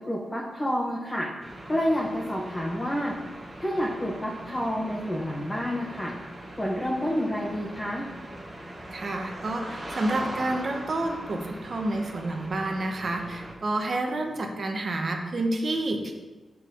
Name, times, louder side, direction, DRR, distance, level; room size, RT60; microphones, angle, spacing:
voice 1, 0.1-1.3 1.7-3.1 3.6-6.1 6.6-8.0, equal, 15° left, -2 dB, 0.9 m, -29 dB
sound 1, 1.4-13.6, right 1 dB, 20° right, 1.4 m, -41 dB
voice 2, 8.9-16.1, right 2 dB, 40° right, 3 dB, 1.1 m, -29 dB
7.6 x 4.7 x 6.1 m, 1.2 s
wide cardioid pair, 140°, 0 cm